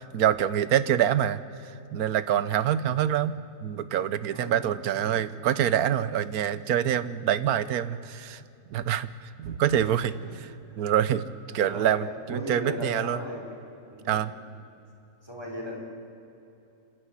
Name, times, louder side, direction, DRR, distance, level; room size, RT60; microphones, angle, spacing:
voice 1, 0.0-1.4 1.9-3.3 3.6-8.4 8.7-9.1 9.4-10.1 10.8-11.2 11.5-13.2 14.1-14.3, right 10 dB, 80° right, 15 dB, 1.3 m, -25 dB
voice 2, 4.3-5.2 10.1-10.4 10.7-10.8 11.6-13.4 13.9-14.3 15.2-15.8, left 1 dB, 15° right, -1 dB, 4.3 m, -38 dB
27.5 x 12.0 x 9.9 m, 2.8 s
omnidirectional pair, 1.6 m